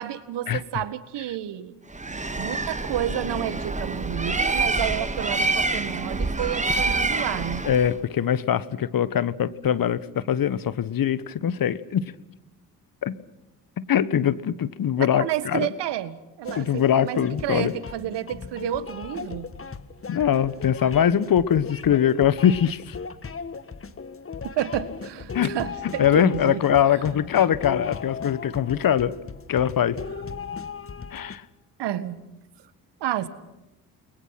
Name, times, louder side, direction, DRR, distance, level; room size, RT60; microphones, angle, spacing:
voice 1, 0.0-1.8 2.1-7.6 15.0-19.5 24.6-26.6 31.8-32.2 33.0-33.3, right 11 dB, 60° right, 15 dB, 1.8 m, -30 dB
Bird, 1.9-8.0, right 3 dB, 15° right, 1.9 m, -27 dB
voice 2, 7.6-12.0 13.0-13.2 13.8-15.7 16.6-17.7 20.1-23.0 25.3-25.5 26.0-29.1 29.5-30.0 31.1-31.4, left 9 dB, 45° left, 16 dB, 1.4 m, -22 dB
sound 1, 16.4-31.4, left 5 dB, 30° left, 1.7 m, -37 dB
29.5 x 22.0 x 6.0 m, 1.0 s
hypercardioid pair, 50°, 47 cm